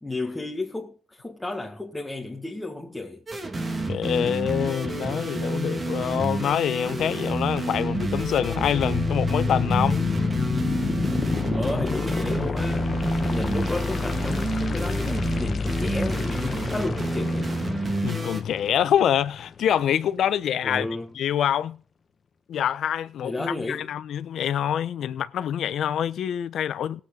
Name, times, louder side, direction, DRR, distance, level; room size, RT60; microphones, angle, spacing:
voice 1, 0.0-3.2 11.5-12.9 13.2-17.5 20.6-21.1 23.2-23.9, left 2 dB, 10° left, 1.8 m, -32 dB
sound 1, 3.3-18.4, right 2 dB, 30° right, 2.0 m, -29 dB
voice 2, 3.9-10.1 18.0-20.9 21.1-21.8 22.5-27.0, left 9 dB, 70° left, 0.9 m, -25 dB
sound 2, 7.8-19.8, left 5 dB, 45° left, 1.2 m, -29 dB
18.0 x 8.6 x 3.9 m
cardioid pair, 90°, 0 cm